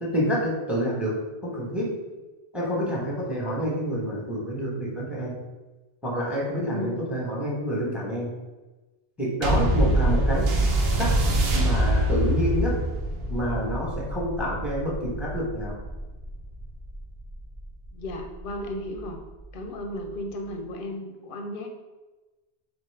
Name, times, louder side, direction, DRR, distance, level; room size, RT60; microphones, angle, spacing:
voice 1, 0.0-2.0 2.5-5.4 6.0-8.3 9.2-10.5 11.0-11.2 11.5-12.8 13.3-15.8, equal, ahead, -4 dB, 0.8 m, -28 dB
voice 2, 6.6-7.2 9.7-10.0 17.9-19.2 19.5-21.7, left 1 dB, 60° left, 4 dB, 0.7 m, -34 dB
sound 1, 9.4-18.2 19.0-19.1, right 1 dB, 70° right, 0.9 m, -25 dB
3.9 x 3.5 x 3.2 m, 1.2 s
omnidirectional pair, 1.1 m